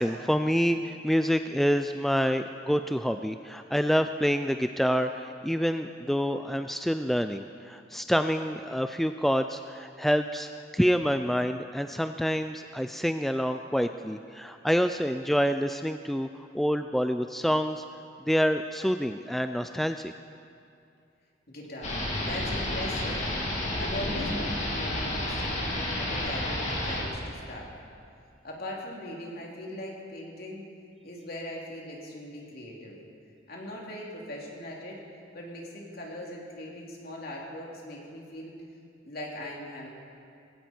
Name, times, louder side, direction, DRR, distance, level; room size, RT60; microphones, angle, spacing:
voice 1, 0.0-17.8 18.3-20.1, equal, ahead, 8 dB, 0.3 m, -27 dB
voice 2, 21.5-23.3 23.5-27.7 28.4-30.6 31.0-33.0 33.5-35.0 35.3-38.5 39.0-39.9, left 1 dB, 55° left, -2 dB, 3.1 m, -40 dB
sound 1, 21.8-27.0, left 1 dB, 40° left, 2.8 m, -30 dB
18.5 x 17.5 x 4.5 m, 2.4 s
head